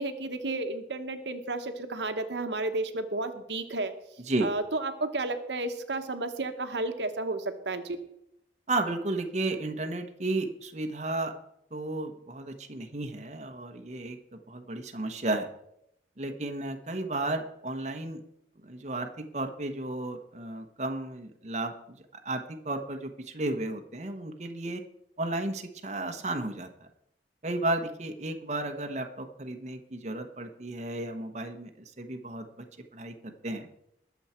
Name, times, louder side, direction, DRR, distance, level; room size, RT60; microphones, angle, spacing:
voice 1, 0.0-3.9 4.4-8.0, right 2 dB, 80° right, 8 dB, 1.1 m, -32 dB
voice 2, 8.7-11.3 11.7-15.5 16.2-18.2 18.6-24.8 25.2-26.7 27.4-32.6 32.9-33.7, right 2 dB, 40° right, 5 dB, 1.0 m, -33 dB
20.5 x 7.1 x 4.4 m, 0.77 s
head